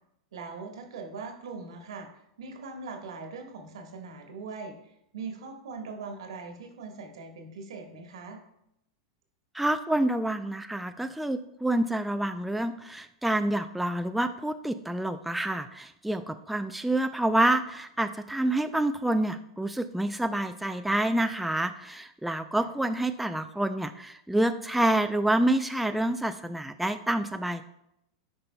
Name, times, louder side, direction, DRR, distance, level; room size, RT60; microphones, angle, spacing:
voice 1, 0.3-8.4 22.5-22.7, right 4 dB, 75° right, 3 dB, 1.5 m, -41 dB
voice 2, 9.5-27.7, right 1 dB, 5° right, 8 dB, 0.4 m, -28 dB
13.5 x 5.4 x 2.3 m, 0.81 s
hypercardioid pair, 95°, 3 cm